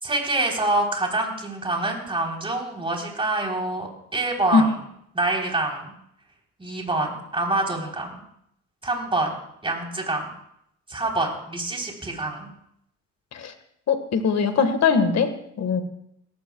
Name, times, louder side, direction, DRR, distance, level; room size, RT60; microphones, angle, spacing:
voice 1, 0.0-4.7 5.1-5.9 6.6-8.2 8.8-9.3 9.6-10.3 10.9-12.5, right 2 dB, 20° right, 0 dB, 3.6 m, -26 dB
voice 2, 13.9-15.3 15.6-15.8, left 5 dB, 60° left, 8 dB, 1.6 m, -20 dB
18.0 x 14.5 x 2.3 m, 0.73 s
cardioid pair, 90°, 30 cm